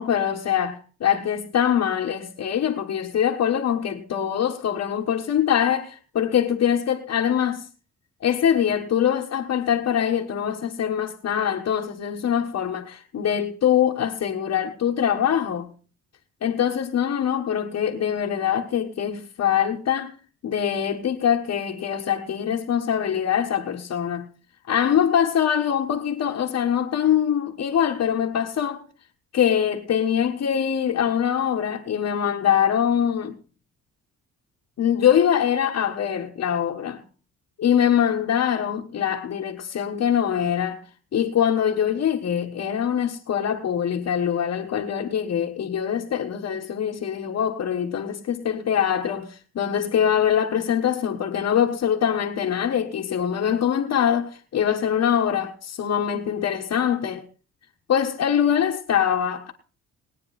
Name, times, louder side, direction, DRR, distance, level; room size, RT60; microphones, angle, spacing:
voice 1, 0.0-7.7 8.2-15.7 16.4-20.1 20.4-24.3 24.7-28.8 29.3-33.4 34.8-37.0 37.6-40.8 41.1-57.2 57.9-59.5, left 9 dB, 55° left, 1.4 m, -23 dB
20.0 x 9.3 x 4.2 m
cardioid pair, 90°, 30 cm